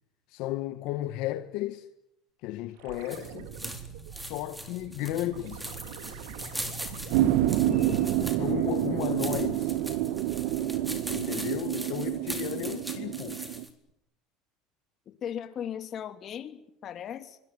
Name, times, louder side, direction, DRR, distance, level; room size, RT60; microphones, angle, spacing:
voice 1, 0.3-1.9 2.4-3.5 4.1-5.7 8.2-9.8 11.1-13.4, left 15 dB, 65° left, 1.4 m, -34 dB
sound 1, 2.8-8.6 8.9-11.5 13.9-14.0, right 8 dB, 85° right, 3.2 m, -45 dB
sound 2, 2.9-13.7, equal, 5° right, 4.1 m, -41 dB
sound 3, 7.1-13.6, right 13 dB, 70° right, 1.7 m, -28 dB
voice 2, 7.6-8.4 15.1-17.4, left 9 dB, 40° left, 2.9 m, -38 dB
25.0 x 21.0 x 9.7 m
cardioid pair, 130°, 0 cm